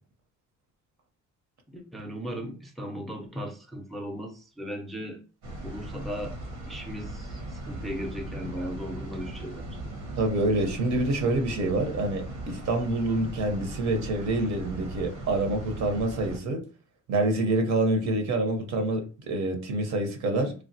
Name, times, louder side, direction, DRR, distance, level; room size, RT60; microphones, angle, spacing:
voice 1, 1.7-5.2 5.6-6.4 6.7-9.8, equal, ahead, 0.5 m, -37 dB
sound 1, 5.4-16.4, right 1 dB, 85° right, 1.1 m, -38 dB
voice 2, 10.2-16.6 17.1-20.5, right 2 dB, 65° right, 0.8 m, -27 dB
3.3 x 2.2 x 2.7 m
cardioid pair, 90°, 30 cm